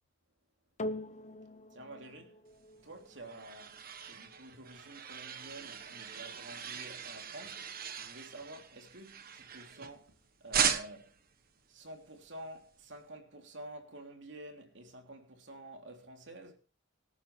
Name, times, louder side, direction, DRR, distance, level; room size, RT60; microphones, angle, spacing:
sound 1, 0.8-9.4 10.1-10.2, left 1 dB, 40° left, 0.9 m, -47 dB
voice 1, 1.7-2.4 2.8-10.1 10.4-11.1 11.7-16.6, right 1 dB, 70° right, 3.2 m, -49 dB
sound 2, 2.8-10.1 10.5-11.2, right 8 dB, 50° right, 1.4 m, -38 dB
24.5 x 9.8 x 3.3 m
head